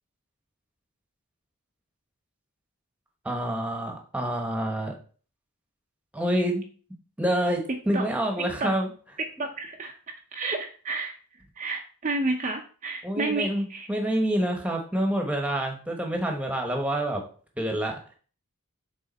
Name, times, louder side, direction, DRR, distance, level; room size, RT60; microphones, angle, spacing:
voice 1, 3.2-4.9 6.1-6.6 7.2-8.9 13.0-17.2 17.6-18.0, right 1 dB, 5° right, 2 dB, 1.1 m, -27 dB
voice 2, 9.4-9.9 10.3-11.1 11.6-13.9, right 3 dB, 35° right, 2 dB, 0.6 m, -30 dB
6.5 x 3.9 x 4.1 m, 0.41 s
head